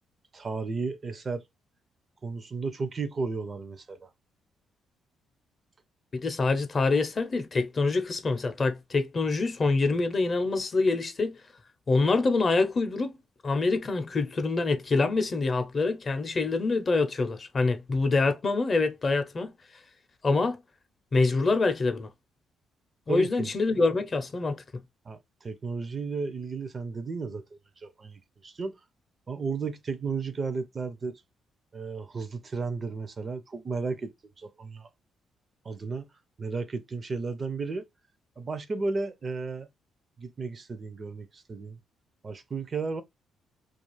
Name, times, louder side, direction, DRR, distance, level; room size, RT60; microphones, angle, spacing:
voice 1, 0.3-1.4 2.2-4.1 23.1-23.5 25.1-28.8 29.3-31.1 31.7-34.9 35.6-36.1 36.4-37.8 38.4-39.7 40.2-41.8 42.2-43.0, right 4 dB, 35° right, 0.4 m, -34 dB
voice 2, 6.1-11.4 11.9-13.1 13.4-19.5 20.2-20.6 21.1-22.1 23.1-24.6, left 3 dB, 40° left, 0.6 m, -25 dB
2.4 x 2.4 x 3.0 m
cardioid pair, 90°, 0 cm